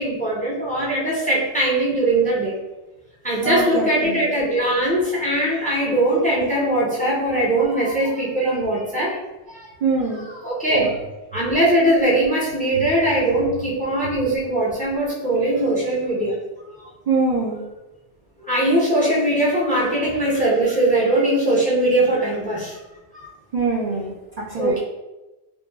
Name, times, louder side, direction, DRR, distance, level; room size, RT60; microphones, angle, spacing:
voice 1, 0.0-2.6 3.2-9.2 9.5-9.7 10.4-11.0 11.3-16.4 18.4-22.8 23.1-23.3 24.6-24.8, right 1 dB, 10° left, -6 dB, 0.5 m, -20 dB
voice 2, 3.4-4.3 9.8-10.2 17.1-17.6 23.5-24.8, right 3 dB, 55° right, -7 dB, 0.5 m, -23 dB
3.0 x 2.2 x 2.2 m, 1.0 s
omnidirectional pair, 1.1 m